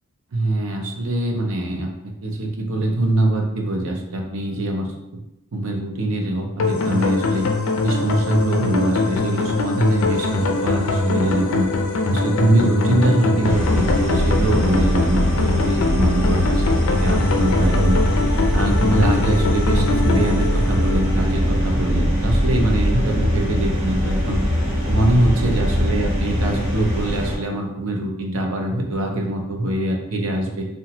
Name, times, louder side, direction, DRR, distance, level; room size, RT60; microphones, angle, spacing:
voice 1, 0.3-1.9 2.2-5.2 5.5-7.5 7.8-11.7 12.1-18.0 18.5-24.4 24.9-30.7, right 1 dB, 70° right, 1 dB, 0.5 m, -23 dB
sound 1, 6.6-21.7, left 3 dB, 65° left, 0.4 m, -22 dB
sound 2, 13.4-27.4, equal, 85° right, 1.2 m, -21 dB
2.8 x 2.2 x 2.8 m, 0.90 s
head